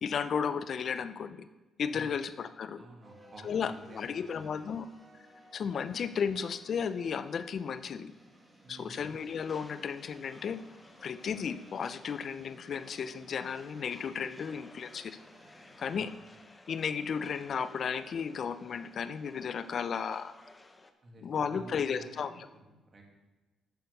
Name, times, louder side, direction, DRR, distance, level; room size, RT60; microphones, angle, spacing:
voice 1, 0.0-1.5 1.8-2.8 3.4-4.9 5.5-8.1 8.7-10.6 11.0-15.2 15.8-16.1 16.7-20.3 21.2-22.3, left 6 dB, 55° left, 13 dB, 0.5 m, -34 dB
voice 2, 2.8-4.5 8.6-9.0 16.0-16.1 21.0-23.0, right 2 dB, 35° right, 1 dB, 2.1 m, -51 dB
sound 1, 3.0-15.9, right 1 dB, 5° right, 1.8 m, -59 dB
sound 2, 9.0-20.9, left 2 dB, 20° left, 0.8 m, -57 dB
9.2 x 4.4 x 6.6 m, 1.2 s
cardioid pair, 90°, 0 cm